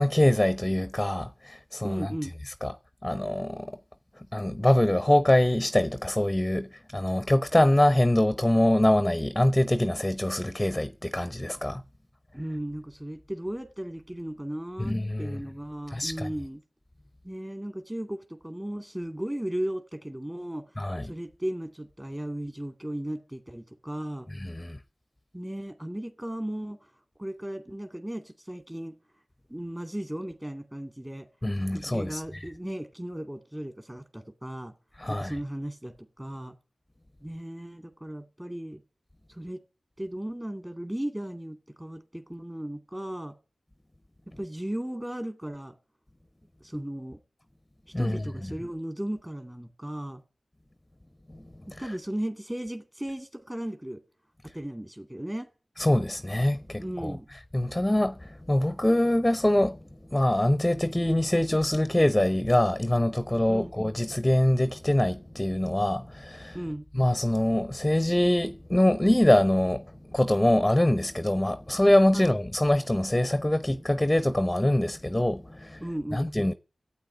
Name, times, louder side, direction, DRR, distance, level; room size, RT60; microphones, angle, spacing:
voice 1, 0.0-2.1 2.6-2.7 3.0-3.8 4.3-11.8 14.8-15.4 15.9-16.3 20.8-21.1 24.3-24.8 31.4-32.4 35.0-35.3 47.9-48.2 51.3-51.5 55.8-57.2 57.5-66.6 66.9-75.8 76.1-76.5, left 1 dB, 15° left, 0.9 m, -24 dB
voice 2, 1.8-2.3 12.3-16.6 17.2-20.7 21.0-24.3 25.3-26.9 27.2-28.9 29.5-31.3 31.6-34.7 35.1-36.5 37.2-38.8 39.3-39.6 40.0-43.3 44.3-45.7 46.6-47.2 48.0-50.2 51.7-54.0 54.4-55.5 56.8-57.3 63.5-63.7 66.5-66.9 72.1-72.3 75.8-76.3, right 1 dB, 15° right, 2.2 m, -36 dB
12.0 x 8.7 x 9.6 m
cardioid pair, 40°, 0 cm